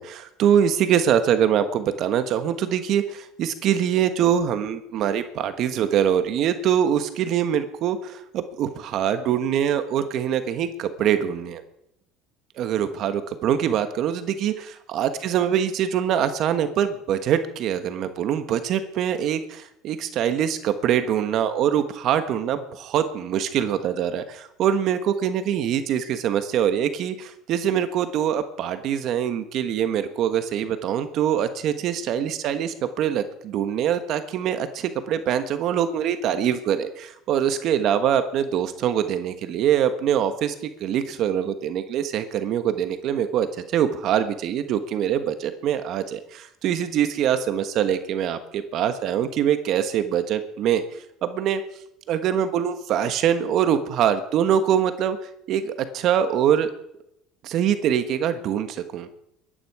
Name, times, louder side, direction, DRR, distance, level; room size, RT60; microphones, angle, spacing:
voice 1, 0.0-11.6 12.6-40.5 40.8-43.5 43.7-50.8 51.2-51.6 52.1-55.2 55.5-56.7 57.4-59.1, right 9 dB, 55° right, 9 dB, 1.3 m, -24 dB
22.5 x 10.5 x 4.9 m, 0.79 s
supercardioid pair, 110°, 0 cm